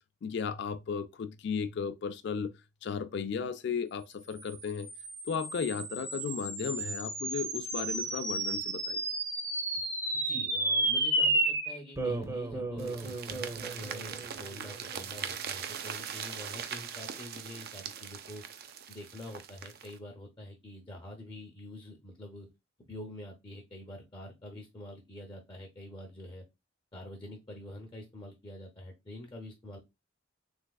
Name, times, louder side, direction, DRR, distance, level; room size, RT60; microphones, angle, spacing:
voice 1, 0.2-2.5 2.8-4.9 5.3-9.0, left 6 dB, 60° left, 0.4 m, -35 dB
sound 1, 4.5-15.2, right 2 dB, 15° right, 0.6 m, -33 dB
voice 2, 10.1-18.4 18.9-22.5 22.9-26.5 26.9-29.8, left 1 dB, 25° left, 0.7 m, -46 dB
sound 2, 12.8-20.0, right 8 dB, 50° right, 0.4 m, -41 dB
3.4 x 3.3 x 2.3 m
head